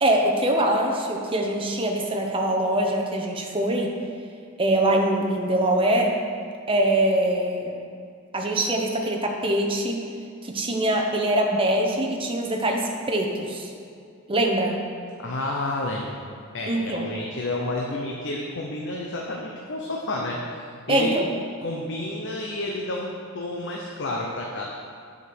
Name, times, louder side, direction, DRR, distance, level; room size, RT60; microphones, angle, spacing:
voice 1, 0.0-3.9 4.6-6.1 6.7-7.8 8.3-10.0 10.4-13.7 14.3-14.8 16.7-17.0 20.9-21.3, right 1 dB, 25° right, 1 dB, 1.0 m, -23 dB
voice 2, 15.2-16.2 16.5-21.1 21.6-24.6, left 2 dB, 60° left, -1 dB, 0.8 m, -30 dB
9.7 x 5.3 x 6.1 m, 2.3 s
head